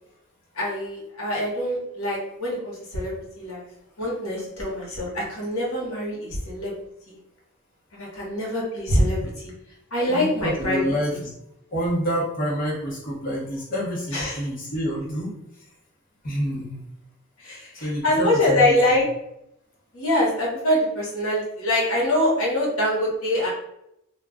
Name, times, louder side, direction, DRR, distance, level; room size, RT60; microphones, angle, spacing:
voice 1, 0.5-3.6 4.0-6.7 7.1-7.2 7.9-9.5 9.9-10.8 14.1-14.4 17.4-19.0 19.9-23.5, left 1 dB, 75° left, -5 dB, 1.0 m, -24 dB
voice 2, 10.0-11.3 11.7-15.3 15.6-15.7 16.2-16.8 17.7-18.7, equal, 45° left, -5 dB, 0.9 m, -28 dB
2.3 x 2.2 x 3.6 m, 0.81 s
head